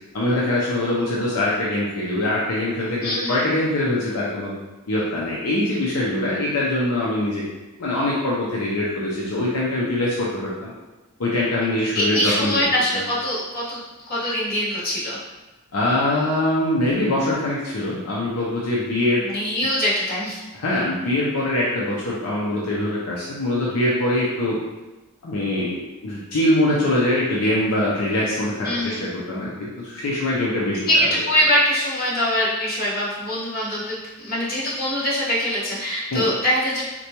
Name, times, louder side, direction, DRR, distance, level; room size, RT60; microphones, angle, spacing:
voice 1, 0.1-4.5 4.9-7.4 7.8-10.7 11.2-12.5 12.9-13.0 15.7-19.2 20.5-24.6 25.2-25.8 26.0-30.9 36.1-36.3, left 1 dB, 75° left, -6 dB, 0.6 m, -23 dB
voice 2, 3.0-3.4 11.9-13.8 14.1-15.2 19.2-20.4 28.6-29.1 30.9-36.9, equal, 45° left, -9 dB, 1.3 m, -23 dB
4.0 x 2.2 x 2.9 m, 1.1 s
head